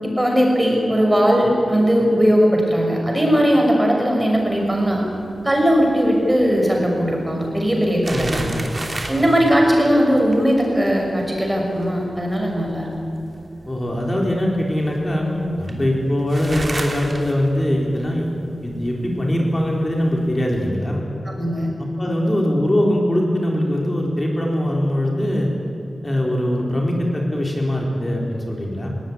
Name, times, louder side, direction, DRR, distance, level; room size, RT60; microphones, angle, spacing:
voice 1, 0.0-5.1 5.4-8.4 9.0-12.9 21.2-21.7, equal, 15° right, 0 dB, 6.3 m, -18 dB
sound 1, 4.3-20.7, right 2 dB, 35° right, 3.1 m, -36 dB
voice 2, 8.1-8.6 9.1-9.4 13.7-18.3 18.6-21.0 22.0-25.5 26.0-28.9, left 1 dB, 25° left, -1 dB, 4.1 m, -22 dB
19.0 x 18.0 x 9.9 m, 2.9 s
wide cardioid pair, 90°, 0 cm